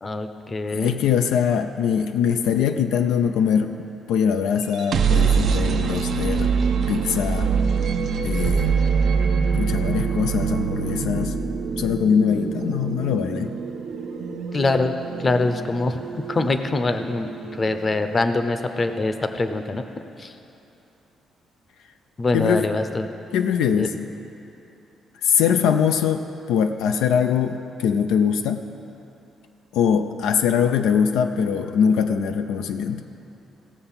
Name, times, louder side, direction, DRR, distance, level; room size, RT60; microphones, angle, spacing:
voice 1, 0.0-1.0 14.5-14.9 15.2-16.0 16.3-17.3 17.6-19.8 20.2-20.3 22.2-23.1 23.8-23.9, left 3 dB, 30° left, 8 dB, 0.7 m, -23 dB
voice 2, 0.7-3.7 4.1-6.5 6.9-7.5 8.2-8.8 9.5-11.4 11.8-13.5 22.3-22.7 23.3-24.1 25.2-28.7 29.7-33.0, left 7 dB, 90° left, 6 dB, 0.5 m, -22 dB
sound 1, 4.6-18.5, right 5 dB, 70° right, 0.7 m, -24 dB
16.5 x 6.8 x 5.7 m, 2.9 s
cardioid pair, 90°, 0 cm